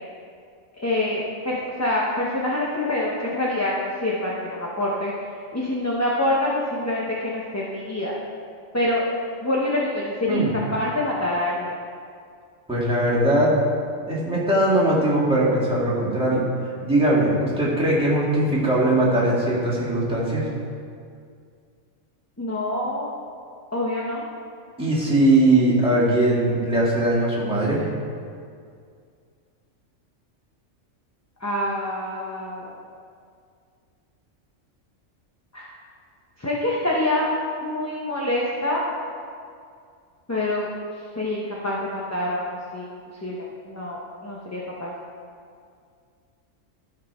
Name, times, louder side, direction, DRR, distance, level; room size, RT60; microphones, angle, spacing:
voice 1, 0.7-8.1 8.7-9.0 9.4-11.8 22.4-23.1 23.7-24.3 31.4-32.8 35.5-35.7 36.4-37.3 37.6-38.9 40.3-40.7 41.2-44.9, left 1 dB, 15° left, -4 dB, 0.7 m, -26 dB
voice 2, 12.7-13.5 14.1-16.4 16.8-20.5 24.8-27.9, right 1 dB, 5° right, -8 dB, 2.1 m, -20 dB
14.0 x 4.7 x 4.4 m, 2.3 s
omnidirectional pair, 1.3 m